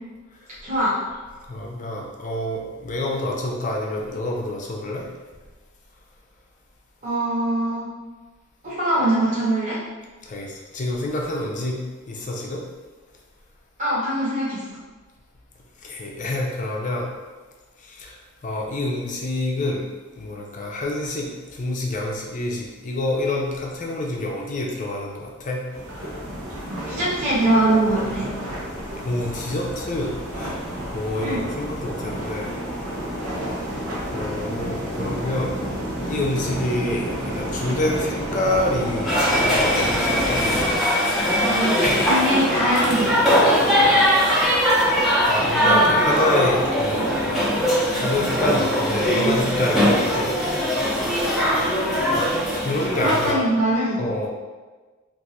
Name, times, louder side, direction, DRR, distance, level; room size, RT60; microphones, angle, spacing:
voice 1, 0.6-1.0 7.0-7.8 8.6-9.8 13.8-14.6 26.8-28.3 31.2-31.4 42.0-43.1 51.8-52.2 53.0-54.0, right 1 dB, 35° right, -9 dB, 0.9 m, -22 dB
voice 2, 1.5-5.1 10.3-11.8 12.1-12.6 15.8-17.1 17.8-18.2 18.4-19.9 20.2-25.6 29.0-30.6 30.9-32.6 34.1-35.6 35.9-40.4 41.8-42.1 45.3-47.5 47.9-50.3 52.1-52.3 52.5-53.4 54.0-54.3, left 1 dB, 35° left, -1 dB, 0.5 m, -27 dB
sound 1, 25.7-40.8, equal, 75° right, 0.8 m, -30 dB
sound 2, 39.1-53.3, equal, ahead, 0.7 m, -20 dB
2.6 x 2.4 x 4.1 m, 1.3 s
head